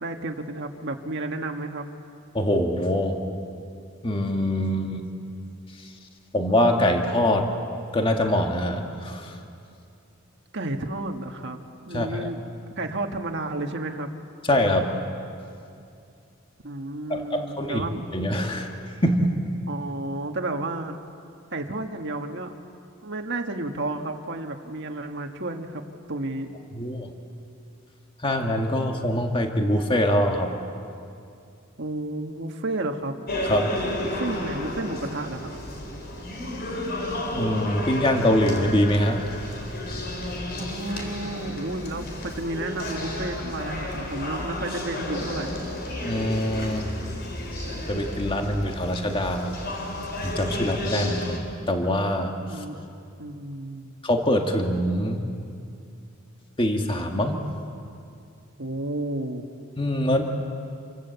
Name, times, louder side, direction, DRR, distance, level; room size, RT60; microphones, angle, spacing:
voice 1, 0.0-1.9 10.5-11.6 11.9-12.4 12.8-14.1 16.6-18.0 19.7-21.0 21.5-22.5 23.0-25.8 26.1-26.5 31.8-33.2 34.0-35.6 40.6-45.6 52.5-52.9 53.2-54.0 58.6-59.4, right 2 dB, 60° right, 4 dB, 1.6 m, -31 dB
voice 2, 2.3-3.2 4.0-5.0 6.3-7.5 7.9-9.3 11.9-12.3 14.5-15.0 17.1-17.9 18.1-18.7 19.0-19.3 26.7-27.1 28.2-30.5 33.5-33.7 37.3-39.5 46.1-46.9 47.7-49.5 50.2-52.6 54.0-55.3 56.6-57.4 59.8-60.2, left 1 dB, 25° left, 3 dB, 1.8 m, -24 dB
sound 1, 33.3-51.4, left 1 dB, 50° left, 4.6 m, -32 dB
28.0 x 24.0 x 8.2 m, 2.5 s
head